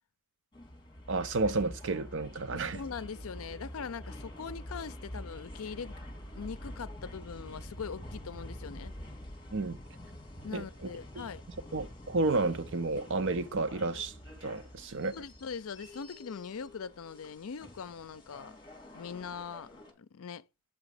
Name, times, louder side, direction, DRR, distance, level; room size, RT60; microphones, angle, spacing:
sound 1, 0.5-19.9, left 1 dB, 20° left, 2.0 m, -47 dB
voice 1, 1.1-2.8 9.5-9.8 10.5-10.6 11.2-11.3 11.7-14.1 14.4-15.1, right 3 dB, 55° right, 0.6 m, -31 dB
voice 2, 2.5-6.0 6.3-8.9 10.4-11.4 15.1-18.6 18.9-19.7 20.0-20.4, left 6 dB, 65° left, 0.5 m, -41 dB
8.4 x 5.0 x 5.0 m
head